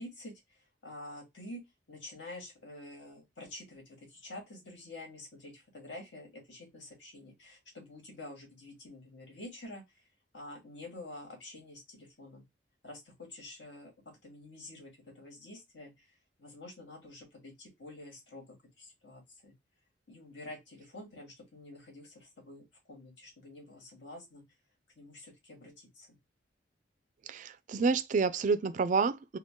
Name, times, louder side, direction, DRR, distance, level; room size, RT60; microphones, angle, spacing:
voice 1, 0.0-1.6 1.9-10.0 10.3-12.5 12.8-13.9 14.2-16.1 16.4-19.5 20.1-24.4 25.0-26.2, left 1 dB, 75° left, 1.8 m, -48 dB
voice 2, 27.3-29.4, right 4 dB, 45° right, 0.3 m, -29 dB
3.7 x 2.2 x 3.6 m
head